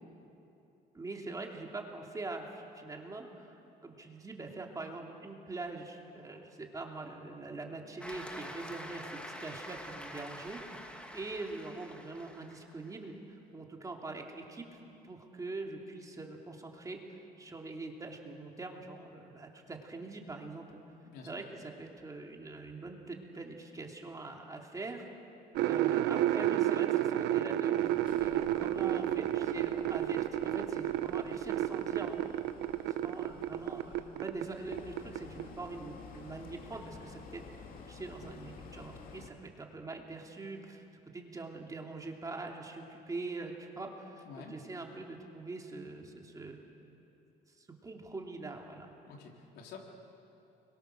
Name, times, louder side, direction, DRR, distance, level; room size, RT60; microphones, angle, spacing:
voice 1, 0.9-3.5 3.8-10.8 11.1-14.8 15.0-20.8 21.2-25.1 25.6-27.9 28.2-32.3 33.0-37.4 37.9-40.8 41.1-46.6 47.6-48.9, right 3 dB, 20° right, 1 dB, 3.0 m, -43 dB
Cheering / Applause, 8.0-12.9, equal, 5° left, 2.1 m, -46 dB
sound 1, 25.6-34.5 34.7-35.4, right 12 dB, 90° right, 1.0 m, -31 dB
sound 2, 27.8-39.3, left 5 dB, 55° left, 2.7 m, -52 dB
voice 2, 49.1-49.8, left 6 dB, 80° left, 1 dB, 3.6 m, -49 dB
29.5 x 23.0 x 6.7 m, 2.8 s
cardioid pair, 110°, 17 cm